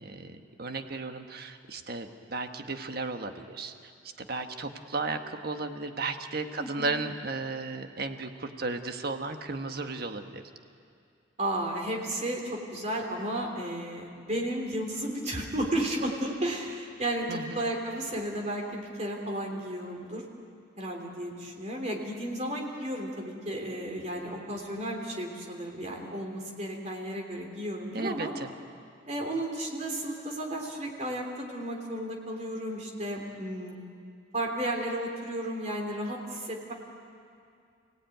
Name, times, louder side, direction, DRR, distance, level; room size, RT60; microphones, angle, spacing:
voice 1, 0.0-3.7 4.2-10.4 17.3-17.6 27.9-28.5, right 3 dB, 55° right, 6 dB, 1.5 m, -34 dB
voice 2, 6.6-6.9 11.4-20.2 20.8-28.3 29.1-33.8 34.3-36.7, right 1 dB, 40° right, 1 dB, 3.3 m, -33 dB
29.5 x 18.0 x 9.3 m, 2.4 s
head